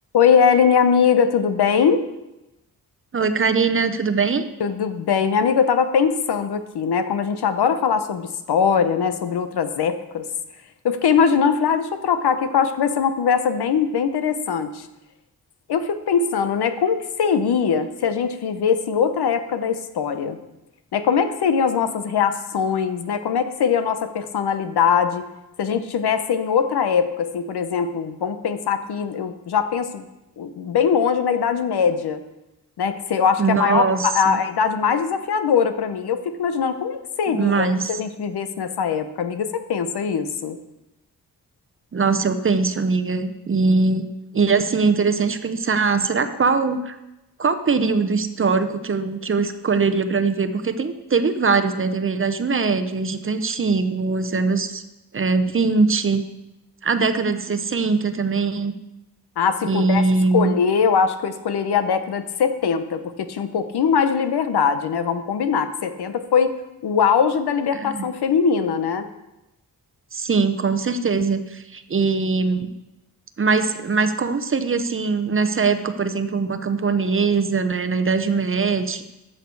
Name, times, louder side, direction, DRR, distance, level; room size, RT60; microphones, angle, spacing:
voice 1, 0.1-2.0 4.6-10.2 10.8-14.9 15.7-20.4 20.9-25.3 25.6-30.1 30.4-32.2 32.8-37.7 38.0-40.6 59.4-60.0 60.3-66.5 66.8-69.1, left 6 dB, 90° left, 10 dB, 0.9 m, -21 dB
voice 2, 3.1-4.5 33.4-34.4 37.3-37.9 41.9-44.0 44.3-46.9 47.4-54.8 55.1-56.2 56.8-58.7 59.6-60.6 67.7-68.0 70.1-72.7 73.4-79.0, right 4 dB, 35° right, 10 dB, 0.7 m, -21 dB
13.5 x 6.6 x 4.7 m, 0.95 s
wide cardioid pair, 110°, 38 cm